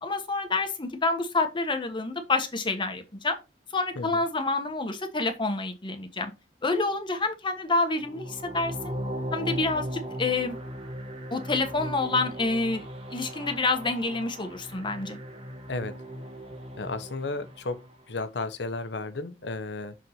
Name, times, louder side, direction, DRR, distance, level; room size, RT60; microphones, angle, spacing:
voice 1, 0.0-3.4 3.7-6.3 6.6-8.9 9.3-9.9 10.2-10.6 11.3-12.8 13.1-15.2, left 3 dB, 30° left, 1.1 m, -28 dB
sound 1, 8.0-18.1, equal, 35° right, 1.2 m, -38 dB
voice 2, 16.8-17.8 18.1-19.9, left 3 dB, 80° left, 0.9 m, -33 dB
6.3 x 4.0 x 4.3 m
head